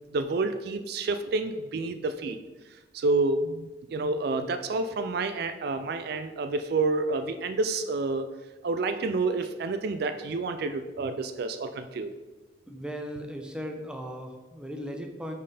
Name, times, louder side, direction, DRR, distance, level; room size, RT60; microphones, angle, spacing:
voice 1, 0.1-2.4 2.9-8.3 8.6-12.1, right 3 dB, 55° right, 9 dB, 0.4 m, -29 dB
voice 2, 12.7-15.3, equal, 5° right, 3 dB, 0.6 m, -37 dB
5.5 x 4.5 x 4.9 m, 1.2 s
head